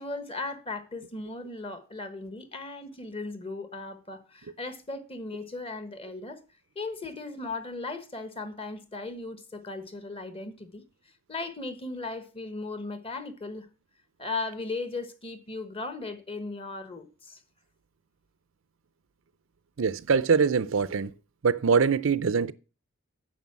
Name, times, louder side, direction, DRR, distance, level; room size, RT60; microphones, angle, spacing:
voice 1, 0.0-6.4 6.7-10.8 11.3-13.7 14.2-17.4, left 3 dB, 25° left, 1.3 m, -37 dB
voice 2, 19.8-21.1 21.4-22.5, right 5 dB, 60° right, 0.5 m, -23 dB
9.3 x 6.5 x 7.4 m
head